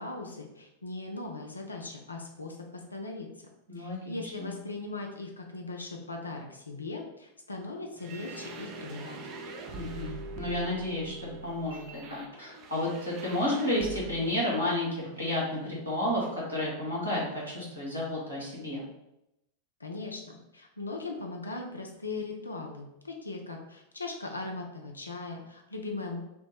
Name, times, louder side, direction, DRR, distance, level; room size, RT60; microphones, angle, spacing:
voice 1, 0.0-3.3 3.8-9.2 19.8-26.2, left 3 dB, 80° left, 1 dB, 0.4 m, -39 dB
voice 2, 3.7-4.5 9.7-18.8, left 1 dB, 85° right, -6 dB, 1.2 m, -32 dB
sound 1, 8.0-14.4, right 2 dB, 35° right, 0.4 m, -43 dB
2.9 x 2.0 x 3.3 m, 0.85 s
figure-of-eight pair, 90°, 0 cm